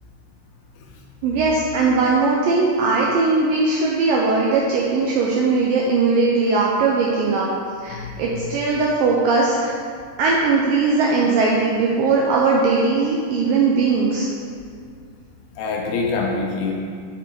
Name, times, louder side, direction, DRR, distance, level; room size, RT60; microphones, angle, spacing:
voice 1, 1.2-7.5 7.8-9.7 10.2-14.3, right 4 dB, 80° right, -3 dB, 2.0 m, -19 dB
voice 2, 7.9-8.5 15.5-16.7, left 4 dB, 75° left, 0 dB, 2.5 m, -25 dB
8.2 x 7.6 x 3.7 m, 2.1 s
omnidirectional pair, 4.8 m